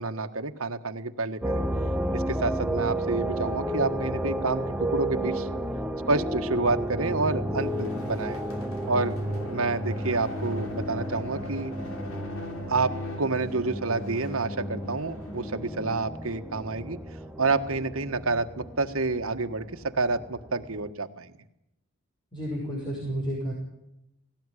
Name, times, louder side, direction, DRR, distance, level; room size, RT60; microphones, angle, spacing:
voice 1, 0.0-1.6 2.1-5.5 6.1-8.4 8.9-9.2 9.5-11.7 12.7-17.0 17.4-21.3, right 3 dB, 75° right, 7 dB, 1.5 m, -29 dB
sound 1, 1.4-20.9, right 1 dB, 5° right, 0.9 m, -32 dB
sound 2, 7.2-16.4, left 1 dB, 80° left, 3.0 m, -41 dB
voice 2, 22.3-23.5, equal, 20° left, -3 dB, 6.1 m, -31 dB
18.0 x 18.0 x 9.9 m, 0.85 s
head